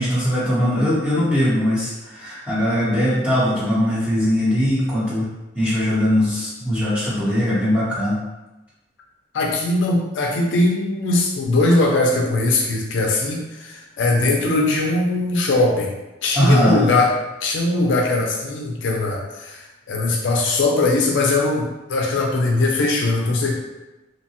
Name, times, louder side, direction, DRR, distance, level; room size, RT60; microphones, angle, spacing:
voice 1, 0.0-5.3 5.5-8.2 16.3-16.8, equal, 5° right, -10 dB, 0.9 m, -20 dB
voice 2, 9.3-15.9 16.2-17.1 17.4-23.5, left 2 dB, 70° left, 0 dB, 0.4 m, -20 dB
2.8 x 2.1 x 2.8 m, 1.0 s
head